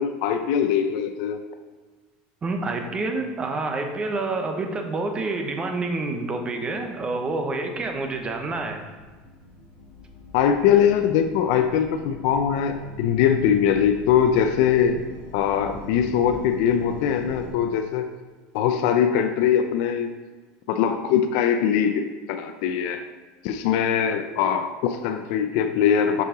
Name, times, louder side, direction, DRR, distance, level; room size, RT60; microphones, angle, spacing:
voice 1, 0.0-1.4 10.3-15.0 15.3-18.1 18.5-20.1 20.7-23.0 23.4-26.2, left 8 dB, 70° left, 6 dB, 0.5 m, -22 dB
voice 2, 2.4-8.8, right 3 dB, 20° right, 4 dB, 0.8 m, -28 dB
sound 1, 6.6-17.5, left 3 dB, 45° left, 1.7 m, -43 dB
6.3 x 5.6 x 3.7 m, 1.4 s
supercardioid pair, 140°, 4 cm